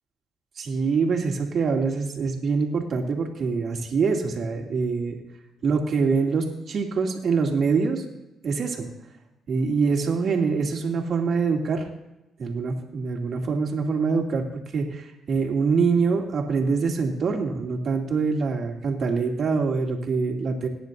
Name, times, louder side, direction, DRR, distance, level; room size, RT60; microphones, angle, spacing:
voice 1, 0.6-5.2 5.6-8.0 8.4-8.9 9.5-11.8 12.4-14.5 14.7-20.7, right 5 dB, 55° right, 1 dB, 2.6 m, -24 dB
21.0 x 10.5 x 2.7 m, 0.98 s
cardioid pair, 90°, 0 cm